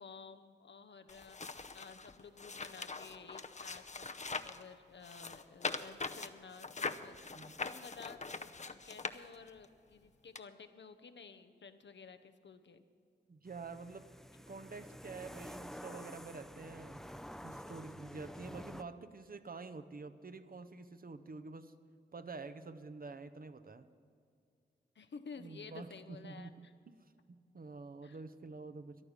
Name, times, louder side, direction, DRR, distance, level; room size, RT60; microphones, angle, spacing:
voice 1, 0.0-12.8 24.9-26.7 28.0-28.2, left 5 dB, 75° left, 9 dB, 0.8 m, -53 dB
sound 1, 1.1-4.6 5.0-9.7 10.4-10.5, left 4 dB, 40° left, 0.7 m, -42 dB
voice 2, 13.3-14.1 14.5-17.1 17.4-21.7 22.1-23.9 25.4-27.0 27.3-29.0, right 4 dB, 50° right, 10 dB, 0.8 m, -48 dB
sound 2, 13.5-18.8, equal, ahead, 0.6 m, -49 dB
14.0 x 11.0 x 6.5 m, 2.3 s
cardioid pair, 40°, 18 cm